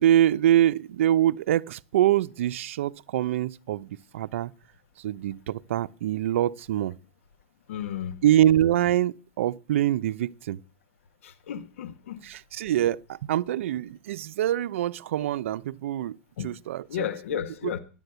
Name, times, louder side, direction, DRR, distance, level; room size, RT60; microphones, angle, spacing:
voice 1, 0.0-4.5 5.0-6.9 8.2-10.6 12.2-16.2 16.4-17.7, right 12 dB, 80° right, 0.7 m, -25 dB
voice 2, 7.7-8.1 11.2-12.2 16.4-16.5 16.9-17.8, left 9 dB, 85° left, 1.6 m, -33 dB
13.5 x 10.5 x 8.0 m
supercardioid pair, 160°, 7 cm